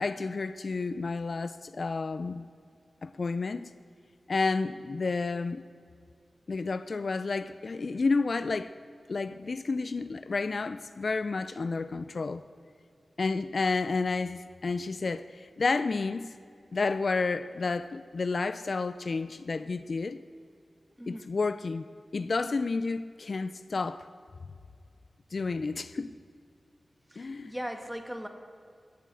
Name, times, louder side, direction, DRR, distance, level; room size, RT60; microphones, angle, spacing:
voice 1, 0.0-2.5 3.0-3.7 4.3-5.6 6.5-8.7 9.1-12.4 13.2-16.4 16.7-20.2 21.1-21.8 22.1-24.1 25.3-26.1 27.2-27.5, left 4 dB, 55° left, 0.4 m, -31 dB
voice 2, 21.0-21.3 27.1-28.3, equal, 5° right, 1.3 m, -39 dB
13.5 x 8.2 x 7.8 m
wide cardioid pair, 110°, 0 cm